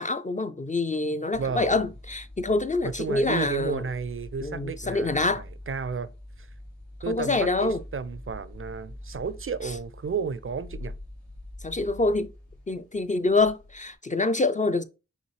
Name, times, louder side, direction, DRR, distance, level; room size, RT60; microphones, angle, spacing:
voice 1, 0.0-3.8 4.4-5.4 7.1-7.8 9.6-9.7 11.6-12.3 12.7-14.8, left 3 dB, 25° left, 0.3 m, -26 dB
sound 1, 1.3-13.9, left 1 dB, 90° left, 2.6 m, -44 dB
voice 2, 1.3-1.9 2.8-6.1 6.4-6.5 7.0-10.9, right 5 dB, 45° right, 0.4 m, -32 dB
5.3 x 3.1 x 3.2 m
cardioid pair, 40°, 30 cm